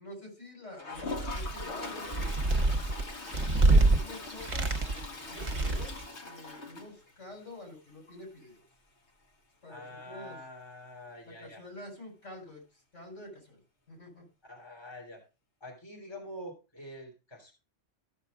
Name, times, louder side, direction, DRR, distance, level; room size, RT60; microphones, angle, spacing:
voice 1, 0.0-2.7 3.4-8.6 9.6-10.4 11.2-13.6 13.9-14.2, left 1 dB, 85° left, 1 dB, 4.5 m, -48 dB
Toilet flush, 0.7-7.4 7.8-7.9 8.1-8.2 8.4-8.5 11.1-11.2 12.5-12.6, left 3 dB, 65° left, 1.6 m, -42 dB
sound 1, 1.0-1.6 2.0-4.0 4.4-5.1 5.4-6.0, right 2 dB, 40° right, 1.1 m, -26 dB
voice 2, 9.7-11.6 14.4-15.2 15.6-17.5, left 1 dB, 20° left, -1 dB, 2.7 m, -46 dB
14.0 x 6.4 x 3.5 m, 0.30 s
omnidirectional pair, 1.2 m